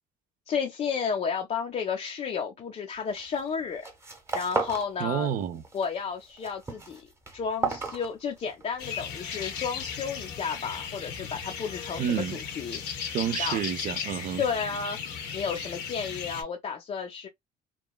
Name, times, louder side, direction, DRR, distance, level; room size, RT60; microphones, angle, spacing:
voice 1, 0.5-3.9 4.3-5.3 5.7-7.1 7.3-12.8 13.4-13.6 14.4-15.0 15.3-17.3, left 6 dB, 40° left, 0.5 m, -32 dB
sound 1, 3.2-3.5 3.7-4.9 5.2-5.9 6.2-8.7, right 3 dB, 15° right, 0.8 m, -33 dB
voice 2, 5.0-5.6 12.0-12.4 13.1-14.4, right 9 dB, 55° right, 0.5 m, -29 dB
sound 2, 8.8-16.4, left 7 dB, 75° left, 0.9 m, -36 dB
3.0 x 2.2 x 2.2 m
cardioid pair, 110°, 17 cm